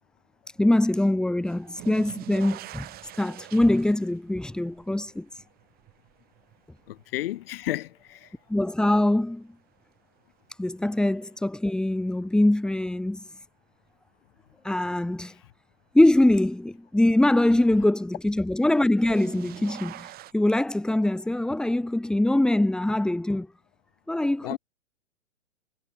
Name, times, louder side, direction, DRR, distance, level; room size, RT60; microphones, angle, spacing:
voice 1, 0.6-2.9 3.2-5.4 8.5-9.5 10.6-13.2 14.6-15.4 15.9-23.5 24.1-24.6, left 1 dB, ahead, 2.3 m, -23 dB
sound 1, 1.4-8.5 8.9-9.6 11.2-11.3 12.9-13.0 18.7-20.3, right 15 dB, 25° right, 7.6 m, -44 dB
voice 2, 6.9-8.3 24.4-24.6, left 15 dB, 45° left, 4.5 m, -32 dB
hypercardioid pair, 150°, 40 cm